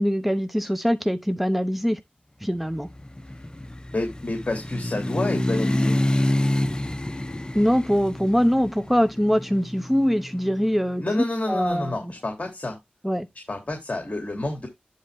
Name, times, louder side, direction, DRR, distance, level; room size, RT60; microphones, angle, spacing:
voice 1, 0.0-2.0 2.4-2.9 7.5-11.0 11.5-12.1 13.0-13.3, equal, 5° right, 0.7 m, -23 dB
sound 1, 2.8-10.8, left 1 dB, 25° left, 0.8 m, -27 dB
voice 2, 3.9-6.0 11.0-12.8 13.5-14.7, left 2 dB, 45° left, 2.7 m, -29 dB
10.5 x 4.2 x 3.5 m
cardioid pair, 45°, 3 cm